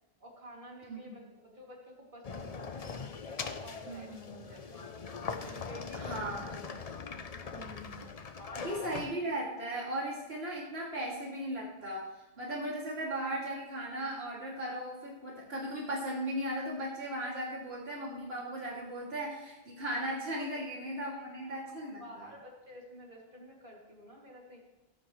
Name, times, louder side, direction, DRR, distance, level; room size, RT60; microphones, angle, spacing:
voice 1, 0.2-4.9 5.3-6.4 7.3-7.8 8.4-9.0 20.4-20.5 21.5-21.6 22.0-24.6, equal, 50° right, -2 dB, 2.9 m, -51 dB
sound 1, 2.2-9.1, left 5 dB, 40° left, 0.7 m, -41 dB
voice 2, 3.9-4.4 5.9-6.7 7.6-8.0 8.6-12.1 12.4-22.3, right 1 dB, 65° right, -5 dB, 3.0 m, -37 dB
16.5 x 9.2 x 3.2 m, 1.1 s
omnidirectional pair, 1.1 m